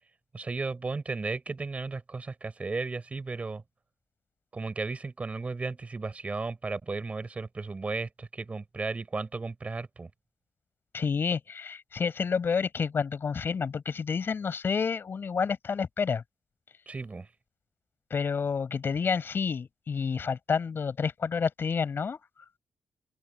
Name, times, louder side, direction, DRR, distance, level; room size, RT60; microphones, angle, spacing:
voice 1, 0.3-3.6 4.5-10.1 16.9-17.3, right 3 dB, 20° right, 5.7 m, -34 dB
voice 2, 10.9-16.2 18.1-22.2, left 6 dB, 35° left, 6.0 m, -29 dB
open air
wide cardioid pair, 180°, 6 cm